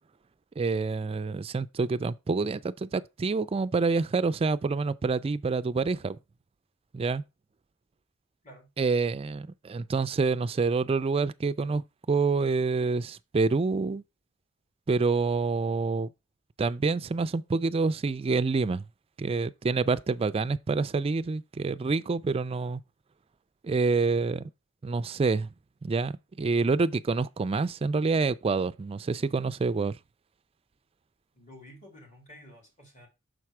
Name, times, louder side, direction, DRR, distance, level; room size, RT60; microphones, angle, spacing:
voice 1, 0.6-6.2 6.9-7.2 8.8-14.0 14.9-16.1 16.6-18.9 19.2-22.8 23.6-24.5 24.8-25.5 25.8-30.0, right 4 dB, 30° right, 0.3 m, -27 dB
voice 2, 31.3-33.1, left 1 dB, 35° left, 2.8 m, -51 dB
6.5 x 4.4 x 4.7 m
head